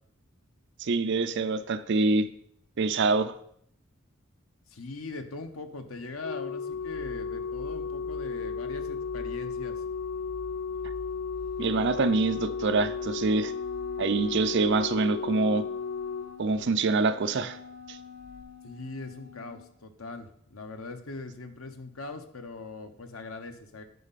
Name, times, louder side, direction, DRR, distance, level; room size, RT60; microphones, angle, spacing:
voice 1, 0.8-2.3 2.8-3.3 11.6-13.5 14.0-15.6 16.4-17.6, right 3 dB, 60° right, 12 dB, 0.5 m, -25 dB
voice 2, 4.7-9.8 18.6-23.8, left 3 dB, 85° left, 7 dB, 0.9 m, -41 dB
Organ, 6.2-17.1 18.2-18.4, left 5 dB, 65° left, 0.6 m, -35 dB
sound 1, 6.7-15.0, equal, 10° left, 0.8 m, -47 dB
Wind instrument woodwind instrument, 11.6-19.7, left 6 dB, 40° right, 1.4 m, -47 dB
9.3 x 5.3 x 4.1 m, 0.67 s
head